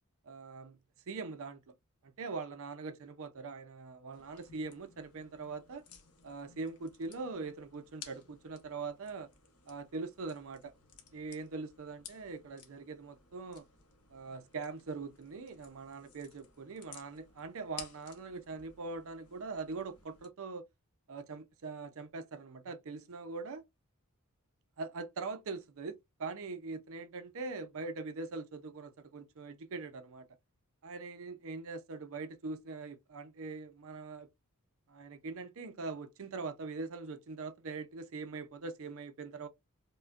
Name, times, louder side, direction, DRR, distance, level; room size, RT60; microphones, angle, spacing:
voice 1, 0.2-0.8 1.1-1.7 2.0-5.9 6.2-9.3 9.7-10.7 11.1-13.6 14.1-20.6 21.1-23.6 24.8-30.3 30.8-34.3 34.9-39.5, right 4 dB, 65° right, 0.6 m, -42 dB
sound 1, 4.1-20.3, left 7 dB, 85° left, 1.0 m, -56 dB
5.1 x 2.2 x 2.4 m
head